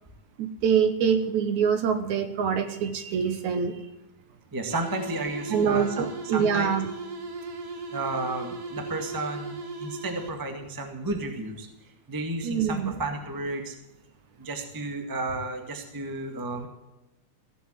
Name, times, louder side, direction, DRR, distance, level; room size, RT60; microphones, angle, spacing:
voice 1, 0.4-3.8 5.5-6.9 12.4-12.9, right 7 dB, 65° right, 9 dB, 2.2 m, -25 dB
voice 2, 4.5-6.7 7.9-11.7 12.1-13.7 14.4-16.7, right 2 dB, 15° right, 4 dB, 0.8 m, -32 dB
sound 1, 4.7-10.6, right 2 dB, 40° right, 1.2 m, -37 dB
16.5 x 8.1 x 7.5 m, 0.97 s
omnidirectional pair, 3.9 m